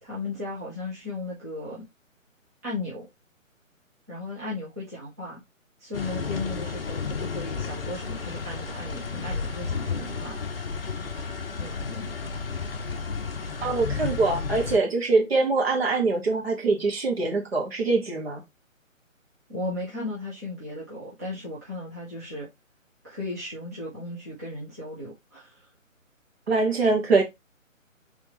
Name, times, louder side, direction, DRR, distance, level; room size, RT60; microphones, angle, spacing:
voice 1, 0.0-1.8 2.6-3.1 4.1-5.4 5.8-10.5 11.6-12.2 19.5-22.5 23.0-25.7, left 2 dB, 10° right, 0.7 m, -36 dB
sound 1, 5.9-14.8, left 5 dB, 45° left, 0.6 m, -32 dB
voice 2, 13.6-18.4 26.5-27.2, right 3 dB, 45° right, 1.8 m, -23 dB
4.7 x 3.5 x 3.1 m
figure-of-eight pair, 145°, 41 cm